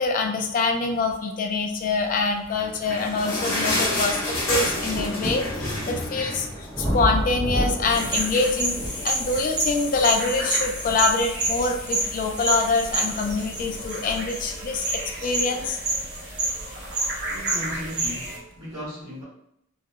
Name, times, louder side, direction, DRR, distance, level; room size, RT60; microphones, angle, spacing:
voice 1, 0.0-4.2 4.5-6.5 6.8-15.8, left 3 dB, 40° left, 4 dB, 0.3 m, -25 dB
sound 1, 2.0-2.1 2.6-17.3 18.2-18.3, equal, ahead, 0.8 m, -34 dB
sound 2, 2.4-7.2 7.5-7.6 7.9-8.1 8.8-8.9, left 1 dB, 85° left, 0.8 m, -28 dB
sound 3, 7.9-18.4, right 2 dB, 50° right, 0.8 m, -29 dB
voice 2, 17.3-19.2, equal, 80° right, -7 dB, 0.8 m, -36 dB
2.3 x 2.0 x 2.8 m, 0.78 s
head